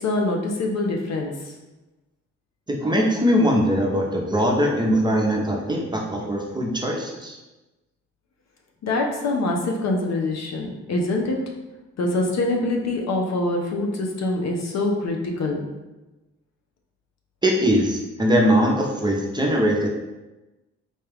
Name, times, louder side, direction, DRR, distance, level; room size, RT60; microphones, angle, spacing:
voice 1, 0.0-1.5 8.8-11.4 12.0-15.6, left 2 dB, 60° left, 1 dB, 0.7 m, -24 dB
voice 2, 2.8-7.4 17.4-19.9, equal, 15° right, -1 dB, 0.7 m, -21 dB
4.3 x 2.3 x 3.4 m, 1.1 s
cardioid pair, 90°, 30 cm